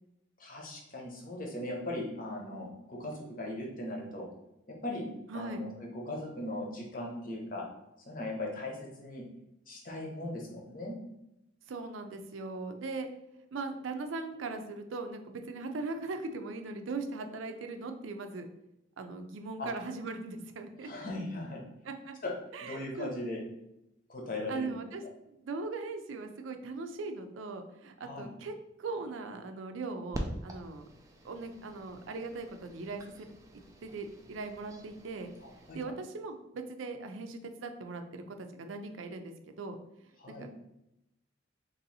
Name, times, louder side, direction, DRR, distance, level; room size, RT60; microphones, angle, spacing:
voice 1, 0.4-4.3 4.7-5.1 5.3-7.7 8.1-9.3 9.7-11.0 19.6-19.7 20.8-21.6 22.2-22.3 22.6-23.4 24.1-24.7 28.0-28.3 35.4-35.8 40.2-40.5, left 1 dB, 45° left, -1 dB, 0.9 m, -38 dB
voice 2, 5.3-5.6 11.7-13.1 13.5-18.4 19.0-20.9 21.8-22.2 22.5-23.2 24.5-25.0 25.3-30.9 31.2-33.3 33.8-35.3 35.7-39.8 40.3-40.5, right 3 dB, 85° right, 6 dB, 0.4 m, -39 dB
sound 1, 30.1-35.8, right 1 dB, 15° right, 0.3 m, -45 dB
3.0 x 2.7 x 4.0 m, 0.87 s
head